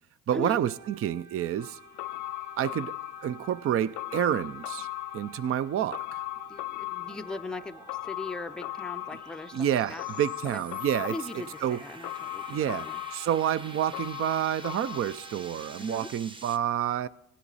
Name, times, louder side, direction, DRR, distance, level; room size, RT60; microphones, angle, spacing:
voice 1, 0.3-1.8 2.6-4.9 5.1-6.2 9.5-11.8 12.5-17.1, right 10 dB, 50° right, 0.5 m, -29 dB
sound 1, 0.6-16.1, right 7 dB, 80° right, 1.4 m, -52 dB
sound 2, 1.6-15.8 16.1-16.2, left 19 dB, 80° left, 0.5 m, -39 dB
sound 3, 6.0-16.6, right 2 dB, 15° right, 0.9 m, -49 dB
voice 2, 6.5-10.0 10.4-10.6 11.0-13.0 15.8-16.1, left 2 dB, 5° left, 0.5 m, -39 dB
17.0 x 10.0 x 4.1 m
cardioid pair, 90°, 30 cm